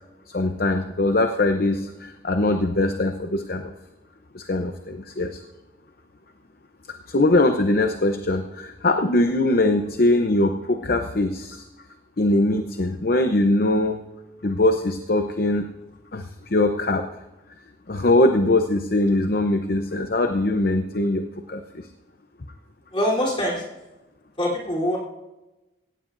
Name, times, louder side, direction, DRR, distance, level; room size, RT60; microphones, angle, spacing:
voice 1, 0.3-3.7 4.3-5.4 7.1-11.6 12.2-14.0 14.4-15.7 16.1-16.2 16.5-17.0 17.9-21.9, left 2 dB, 55° left, 6 dB, 0.8 m, -22 dB
voice 2, 22.9-23.6 24.4-25.0, equal, 30° left, -3 dB, 3.6 m, -23 dB
17.0 x 16.5 x 2.6 m, 1.0 s
head